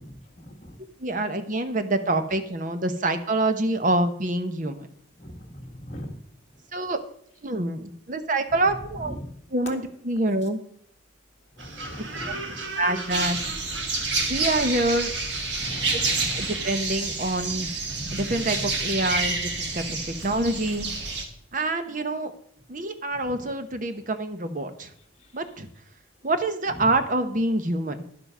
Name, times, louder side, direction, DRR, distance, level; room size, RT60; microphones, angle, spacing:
voice 1, 0.4-0.7 5.2-6.2 9.0-9.3 9.6-9.8 11.6-12.6 15.6-16.6 23.3-23.5, equal, 35° left, 1 dB, 1.7 m, -39 dB
voice 2, 1.0-4.9 6.7-7.0 7.4-9.1 9.5-10.6 12.3-12.4 12.8-13.4 14.3-15.1 16.4-17.7 18.1-20.9 21.5-22.3 22.7-24.9 25.3-25.7 26.2-28.0, right 2 dB, 45° right, 9 dB, 0.9 m, -26 dB
sound 1, 11.6-16.7, right 3 dB, 80° right, 1.6 m, -38 dB
sound 2, 13.1-21.3, right 3 dB, 65° right, 1.6 m, -28 dB
11.0 x 7.2 x 5.5 m, 0.66 s
head